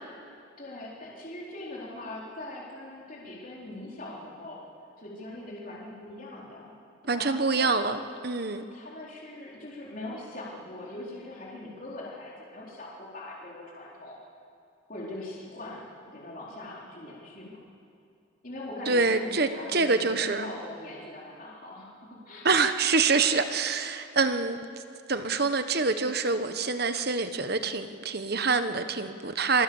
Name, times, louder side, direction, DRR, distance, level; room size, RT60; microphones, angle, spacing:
voice 1, 0.6-4.6 5.0-6.7 7.1-7.8 8.7-14.2 14.9-17.7 18.4-22.5, left 1 dB, 40° left, -5 dB, 4.2 m, -41 dB
voice 2, 7.1-8.6 18.9-20.5 22.4-24.6 25.1-29.6, right 4 dB, 50° right, 9 dB, 1.2 m, -26 dB
26.5 x 23.0 x 7.3 m, 2.5 s
head